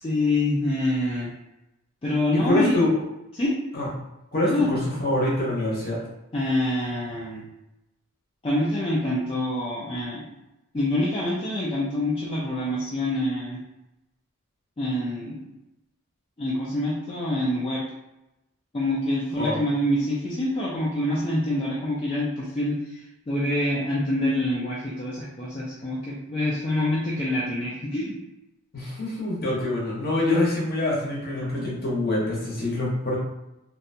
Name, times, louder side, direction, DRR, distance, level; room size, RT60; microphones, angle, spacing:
voice 1, 0.0-1.3 2.0-2.7 3.4-3.5 4.4-4.7 6.3-7.4 8.4-10.3 10.7-13.6 14.8-15.5 16.4-17.8 18.7-23.0 23.3-28.2, left 1 dB, 25° left, -7 dB, 0.4 m, -26 dB
voice 2, 2.3-2.9 3.7-3.9 4.3-6.0 19.3-19.6 28.7-33.2, left 1 dB, 45° left, -5 dB, 0.8 m, -25 dB
2.6 x 2.1 x 2.6 m, 0.93 s
head